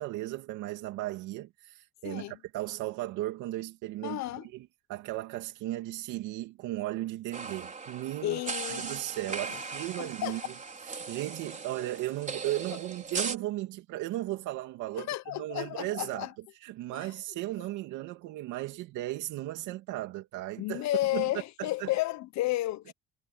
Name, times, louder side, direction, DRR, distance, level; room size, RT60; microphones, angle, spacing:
voice 1, 0.0-10.5 10.9-16.3 16.6-20.8 21.1-21.3 21.6-21.9, right 16 dB, 85° right, 2.7 m, -36 dB
voice 2, 2.0-2.4 4.0-4.5 8.2-8.9 9.5-9.6 10.0-10.4 15.0-16.3 16.9-17.1 20.6-22.9, left 16 dB, 70° left, 0.9 m, -32 dB
sound 1, 7.3-13.4, right 4 dB, 25° right, 4.4 m, -38 dB
cardioid pair, 110°, 29 cm